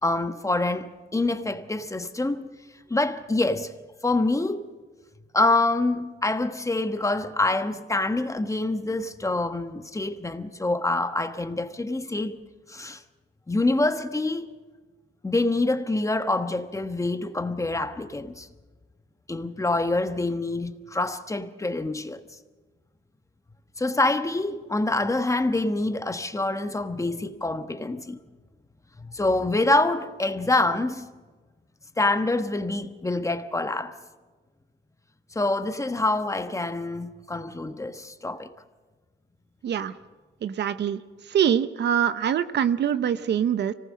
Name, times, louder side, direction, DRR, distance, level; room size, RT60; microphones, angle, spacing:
voice 1, 0.0-2.5 2.9-3.7 4.0-4.7 5.3-12.4 12.7-13.0 13.5-14.5 15.2-18.5 19.3-22.2 23.8-28.2 29.0-31.1 32.0-33.9 35.3-38.5, left 2 dB, 15° left, 1.2 m, -26 dB
voice 2, 40.4-41.0 41.3-43.7, right 9 dB, 60° right, 0.9 m, -24 dB
25.0 x 18.5 x 6.4 m
cardioid pair, 90°, 20 cm